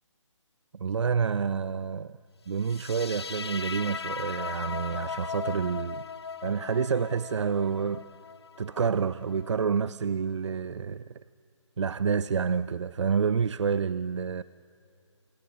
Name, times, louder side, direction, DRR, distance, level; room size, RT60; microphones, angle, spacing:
voice 1, 0.8-2.2 2.5-6.0 6.4-8.1 8.6-11.0 11.8-14.4, right 6 dB, 65° right, 0.4 m, -28 dB
sound 1, 2.6-9.7, left 6 dB, 55° left, 0.8 m, -38 dB
27.5 x 26.5 x 3.8 m
figure-of-eight pair, 150°, 16 cm